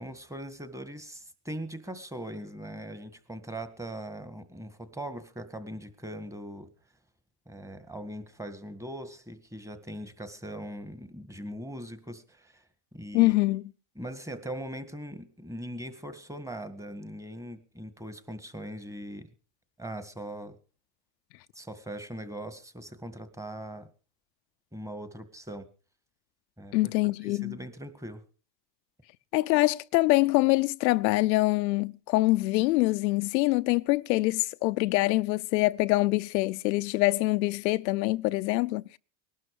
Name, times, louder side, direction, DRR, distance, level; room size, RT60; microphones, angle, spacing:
voice 1, 0.0-6.7 7.5-12.6 12.9-13.3 14.0-19.3 19.8-20.6 21.5-23.9 24.7-25.7 26.6-26.8 27.2-28.2, right 1 dB, 5° right, 1.9 m, -40 dB
voice 2, 13.1-13.6 26.7-27.6 29.3-39.0, left 20 dB, 85° left, 0.8 m, -25 dB
20.5 x 12.0 x 4.9 m
supercardioid pair, 120°, 49 cm